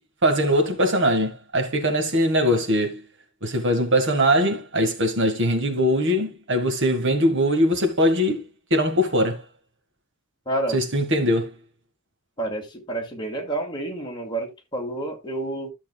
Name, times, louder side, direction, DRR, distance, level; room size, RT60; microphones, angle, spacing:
voice 1, 0.2-3.0 3.4-8.4 8.7-9.4 10.7-11.5, equal, 55° right, 1.8 m, -21 dB
voice 2, 10.5-10.8 12.4-15.7, right 2 dB, 20° left, 2.3 m, -29 dB
13.5 x 7.1 x 2.3 m
head